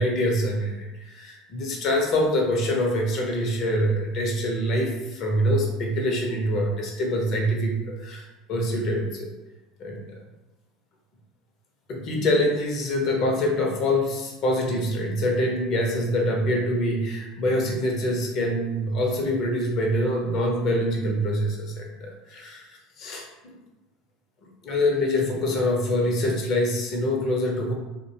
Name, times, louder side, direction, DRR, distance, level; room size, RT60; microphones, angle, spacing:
voice 1, 0.0-9.3 9.8-10.1 11.9-22.7 23.0-23.2 24.6-27.7, left 1 dB, 50° left, 0 dB, 0.6 m, -25 dB
2.5 x 2.1 x 2.7 m, 1.1 s
figure-of-eight pair, 75°, 0 cm